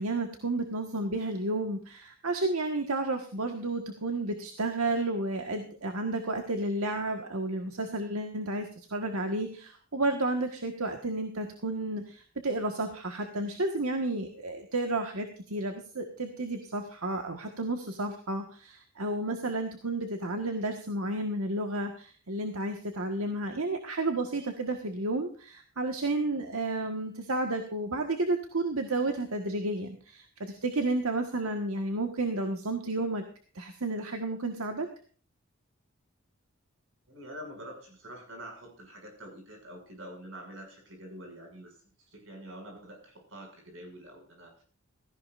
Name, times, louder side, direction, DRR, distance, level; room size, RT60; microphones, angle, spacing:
voice 1, 0.0-33.2 33.5-34.9, right 2 dB, 85° right, 5 dB, 1.5 m, -32 dB
voice 2, 37.1-44.6, equal, 60° right, 3 dB, 6.4 m, -46 dB
17.0 x 14.5 x 2.5 m, 0.42 s
head